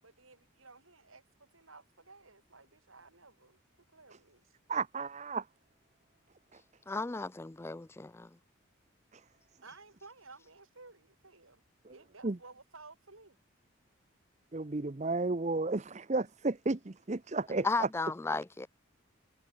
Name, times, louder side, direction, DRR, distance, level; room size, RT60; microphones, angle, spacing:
voice 1, 0.0-3.6 3.9-4.5 9.6-11.6 11.9-13.4, right 3 dB, 80° right, 6.9 m, -55 dB
voice 2, 4.7-5.5 6.5-6.6 9.1-9.2 11.8-11.9 12.2-12.4 14.5-17.9, right 3 dB, 35° right, 0.7 m, -33 dB
voice 3, 6.9-8.4 17.6-18.7, left 3 dB, 10° left, 0.3 m, -34 dB
head